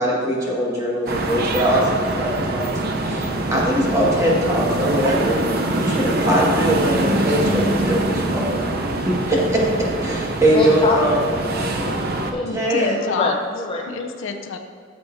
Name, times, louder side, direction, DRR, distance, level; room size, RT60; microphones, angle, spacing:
voice 1, 0.0-8.6 9.1-11.2 12.5-13.0, equal, 15° right, -4 dB, 1.8 m, -21 dB
sound 1, 1.1-12.3, right 2 dB, 50° right, 0.7 m, -24 dB
voice 2, 10.5-11.3 11.5-13.9, left 2 dB, 25° left, 0 dB, 0.6 m, -26 dB
voice 3, 12.4-13.4 13.9-14.6, left 4 dB, 70° left, 6 dB, 0.6 m, -27 dB
13.5 x 6.6 x 2.7 m, 2.2 s
head